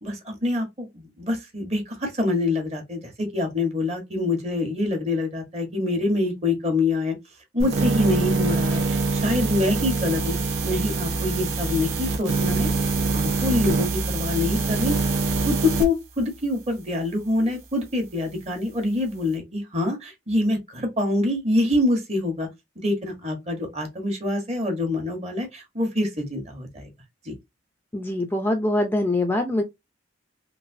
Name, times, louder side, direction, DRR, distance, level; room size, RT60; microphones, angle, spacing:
voice 1, 0.0-7.1 7.5-10.4 10.6-12.7 13.1-15.0 15.4-22.5 22.8-26.9 27.2-27.3, left 2 dB, 35° right, 1.0 m, -25 dB
sound 1, 7.6-15.9, right 3 dB, 85° right, 0.9 m, -24 dB
voice 2, 27.9-29.6, left 1 dB, 10° left, 0.4 m, -23 dB
3.2 x 2.6 x 2.5 m
head